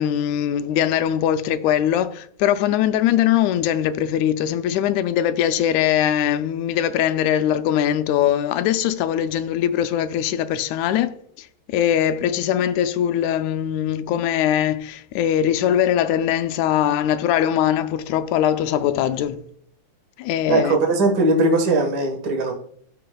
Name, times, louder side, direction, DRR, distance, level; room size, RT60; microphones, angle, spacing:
voice 1, 0.0-19.5 20.2-20.8, left 10 dB, 85° left, 2.0 m, -21 dB
voice 2, 20.5-22.5, right 2 dB, 45° right, 1.6 m, -19 dB
13.5 x 5.7 x 2.3 m
omnidirectional pair, 3.3 m